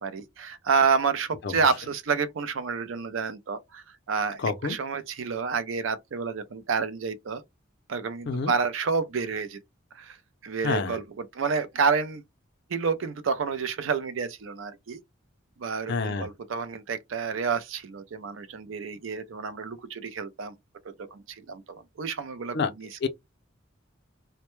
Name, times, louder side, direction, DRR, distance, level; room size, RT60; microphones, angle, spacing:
voice 1, 0.0-7.4 7.9-9.6 9.9-10.2 10.4-12.2 12.7-15.0 15.6-20.5 20.8-23.1, right 5 dB, 75° right, 0.5 m, -29 dB
voice 2, 4.4-4.7 8.3-8.5 10.6-11.0 15.9-16.3 22.5-22.7 23.0-23.1, left 4 dB, 60° left, 0.5 m, -27 dB
2.1 x 2.1 x 3.0 m
head